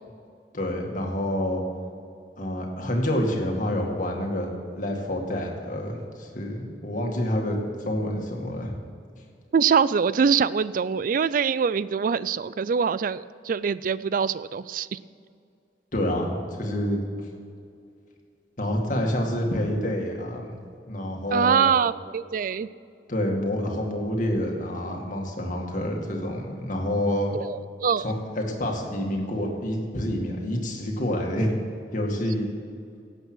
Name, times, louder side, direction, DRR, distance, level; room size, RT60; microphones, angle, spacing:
voice 1, 0.5-1.6 2.4-4.5 4.8-7.6 7.8-8.7 15.9-17.0 18.6-20.5 20.9-21.7 23.1-27.4 28.0-31.5 31.9-32.5, left 1 dB, 50° left, 1 dB, 2.1 m, -28 dB
voice 2, 9.5-15.0 21.3-22.7 27.4-28.0, right 6 dB, 50° right, 18 dB, 0.3 m, -24 dB
16.5 x 8.1 x 6.3 m, 2.3 s
head